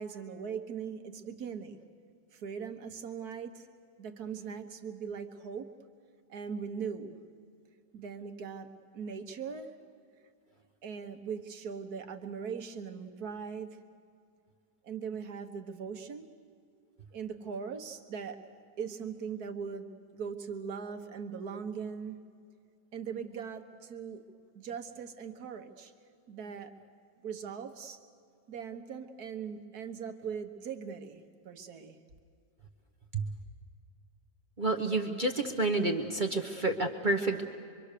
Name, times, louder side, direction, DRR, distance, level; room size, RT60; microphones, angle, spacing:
voice 1, 0.0-1.8 2.3-3.7 4.0-5.7 6.3-7.2 7.9-9.7 10.8-13.8 14.8-16.3 17.1-18.4 18.8-22.2 22.9-24.2 24.5-25.9 26.3-26.7 27.2-28.0 28.5-32.0, right 6 dB, 65° right, 7 dB, 1.6 m, -40 dB
voice 2, 34.6-37.4, right 2 dB, 35° right, 4 dB, 0.9 m, -29 dB
24.5 x 24.5 x 6.6 m, 2.3 s
omnidirectional pair, 1.9 m